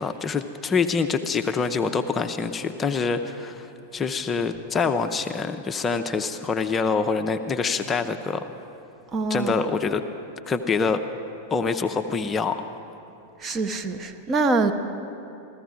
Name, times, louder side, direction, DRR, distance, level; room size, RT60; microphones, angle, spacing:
voice 1, 0.0-3.7 3.9-8.4 9.3-10.0 10.5-11.0 11.5-12.6, left 5 dB, 20° left, 7 dB, 0.5 m, -25 dB
voice 2, 9.1-9.6 13.4-14.7, right 3 dB, 25° right, 7 dB, 0.8 m, -24 dB
15.0 x 14.5 x 4.9 m, 2.8 s
figure-of-eight pair, 90°, 0 cm